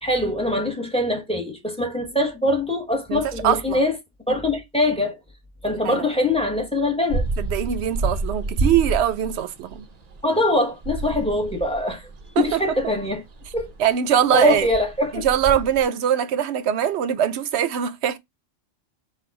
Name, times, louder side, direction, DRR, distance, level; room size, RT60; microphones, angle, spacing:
voice 1, 0.0-3.9 4.3-5.2 5.6-7.3 10.2-12.1 12.4-13.2 13.5-13.7 14.3-15.2, left 1 dB, 5° left, 0.9 m, -23 dB
voice 2, 3.1-3.8 5.8-6.0 7.4-9.9 12.4-12.6 13.8-14.7 15.1-18.2, right 9 dB, 70° right, 0.8 m, -22 dB
sound 1, 7.1-15.8, right 2 dB, 45° right, 0.7 m, -29 dB
4.3 x 2.4 x 4.5 m
omnidirectional pair, 1.2 m